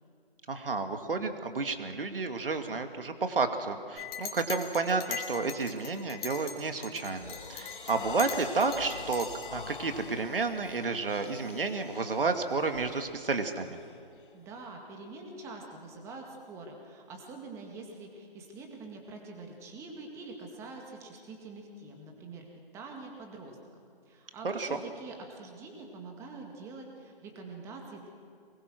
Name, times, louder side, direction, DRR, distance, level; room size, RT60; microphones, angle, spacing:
voice 1, 0.5-13.8 24.4-24.8, right 4 dB, 65° right, 7 dB, 2.5 m, -31 dB
Chink clink, 4.0-6.6 6.8-9.5, left 7 dB, 25° left, 3.0 m, -40 dB
sound 1, 5.1-5.3 5.8-6.1 6.6-14.7, left 5 dB, 60° left, 1.7 m, -47 dB
voice 2, 14.3-22.5 22.7-28.1, right 3 dB, 10° right, 2 dB, 2.0 m, -45 dB
23.5 x 21.5 x 6.3 m, 2.5 s
figure-of-eight pair, 155°, 30 cm